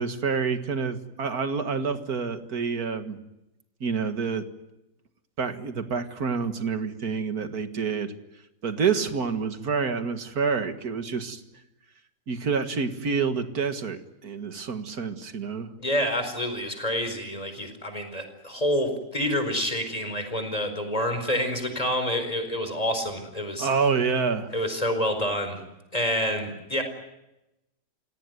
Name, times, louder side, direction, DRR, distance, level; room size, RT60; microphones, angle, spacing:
voice 1, 0.0-3.2 3.8-4.4 5.4-8.1 8.6-11.4 12.3-15.7 23.6-24.5, right 5 dB, 60° right, 8 dB, 2.2 m, -28 dB
voice 2, 15.8-23.7 24.5-25.6 25.9-26.8, equal, 20° left, 7 dB, 4.8 m, -28 dB
28.0 x 18.5 x 9.5 m, 0.93 s
omnidirectional pair, 1.8 m